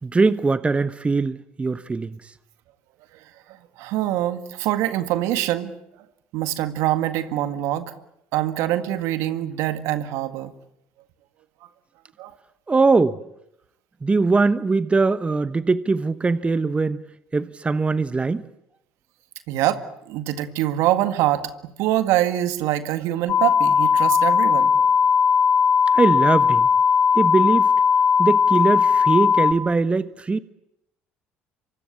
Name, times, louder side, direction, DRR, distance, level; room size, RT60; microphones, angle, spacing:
voice 1, 0.0-2.3 12.7-13.2 14.0-17.0 17.3-18.4 25.9-26.7 27.1-27.7 28.2-30.4, right 3 dB, 25° right, 1.1 m, -21 dB
voice 2, 3.8-5.7 6.3-7.9 8.3-10.5 12.2-12.3 19.5-19.8 20.1-24.7, right 13 dB, 70° right, 1.9 m, -24 dB
sound 1, 23.3-29.5, left 6 dB, 45° left, 2.5 m, -18 dB
26.0 x 24.5 x 8.5 m
hypercardioid pair, 65°, 5 cm